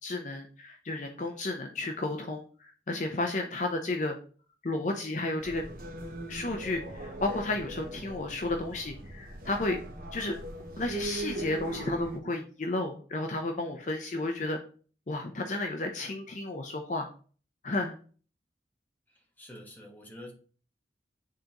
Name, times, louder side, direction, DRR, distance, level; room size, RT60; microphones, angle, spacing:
voice 1, 0.0-4.2 4.6-5.6 6.3-9.8 10.1-10.3 10.8-14.6 15.1-17.1 17.6-18.0, left 2 dB, 40° left, 0.6 m, -32 dB
sound 1, 5.4-12.2, right 2 dB, 50° right, 0.9 m, -40 dB
voice 2, 19.1-20.3, left 1 dB, 10° left, 1.2 m, -47 dB
9.0 x 3.8 x 2.9 m
head